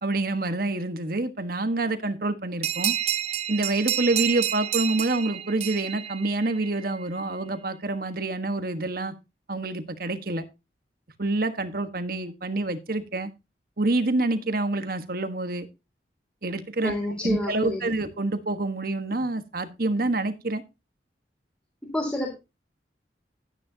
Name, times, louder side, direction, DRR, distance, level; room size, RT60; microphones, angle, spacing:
voice 1, 0.0-2.9 3.5-9.1 9.5-10.4 11.2-13.3 13.8-15.7 16.4-16.9 17.2-20.6, right 2 dB, 50° right, 1.4 m, -27 dB
sound 1, 2.6-6.9, right 11 dB, 35° right, 0.8 m, -29 dB
voice 2, 16.8-17.8 21.8-22.3, left 1 dB, 5° left, 3.4 m, -29 dB
12.0 x 9.8 x 2.8 m
head